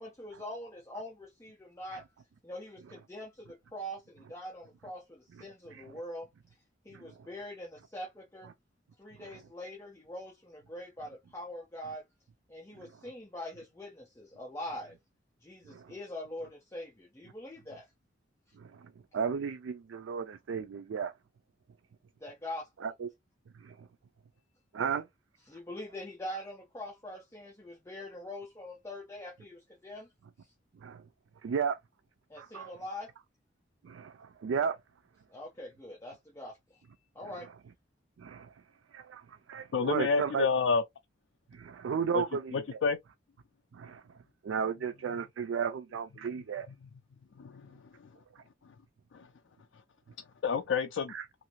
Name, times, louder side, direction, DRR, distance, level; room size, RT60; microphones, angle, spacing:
voice 1, 0.0-2.1 2.4-6.3 6.8-8.5 9.0-12.0 12.5-15.0 15.4-17.8 22.2-22.9 25.5-30.1 30.4-30.5 32.3-33.1 35.3-36.6 37.1-37.5, left 1 dB, 15° left, 0.6 m, -43 dB
voice 2, 18.6-21.1 22.8-23.1 23.6-23.9 24.7-25.1 30.8-31.0 31.4-31.8 32.4-32.7 33.8-34.8 38.2-38.5 38.9-39.2 39.5-40.5 41.5-42.8 43.7-44.0 44.4-46.7 51.1-51.3, right 6 dB, 80° right, 0.3 m, -34 dB
voice 3, 39.7-40.8 42.1-42.2 42.5-43.0 47.4-47.5 50.4-51.1, left 5 dB, 70° left, 0.4 m, -28 dB
2.7 x 2.6 x 2.9 m
head